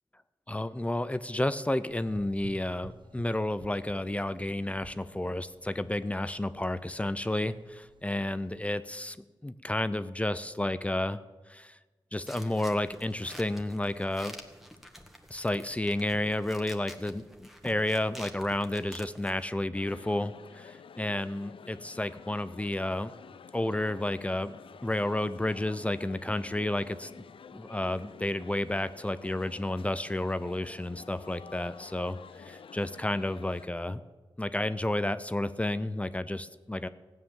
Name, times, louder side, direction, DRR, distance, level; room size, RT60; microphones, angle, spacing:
voice 1, 0.5-11.2 11.5-11.8 12.1-14.4 15.3-23.1 23.5-24.6 24.8-27.1 27.5-34.0 34.4-36.9, left 1 dB, 15° left, 13 dB, 0.6 m, -31 dB
Gurgling / Engine, 1.9-8.6, right 4 dB, 55° right, 0.9 m, -53 dB
sound 1, 12.3-19.5, equal, ahead, 1.7 m, -48 dB
sound 2, 19.7-33.7, left 7 dB, 70° left, 0.5 m, -50 dB
16.0 x 9.3 x 7.4 m, 1.3 s
wide cardioid pair, 95°, 10 cm